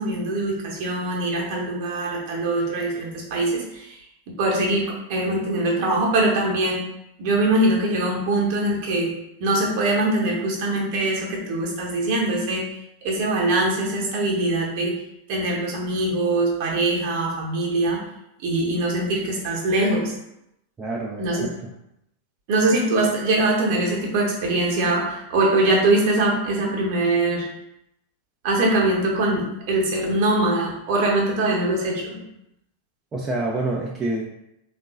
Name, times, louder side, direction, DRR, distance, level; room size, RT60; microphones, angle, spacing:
voice 1, 0.0-4.0 4.4-6.8 7.2-9.1 9.4-12.7 13.0-14.9 15.3-18.0 18.4-20.1 21.2-21.5 22.5-27.4 28.4-32.2, right 2 dB, 45° right, -2 dB, 1.0 m, -22 dB
voice 2, 20.8-21.5 33.1-34.2, right 2 dB, 20° right, -3 dB, 0.5 m, -27 dB
3.7 x 2.5 x 3.7 m, 0.83 s
figure-of-eight pair, 90°, 0 cm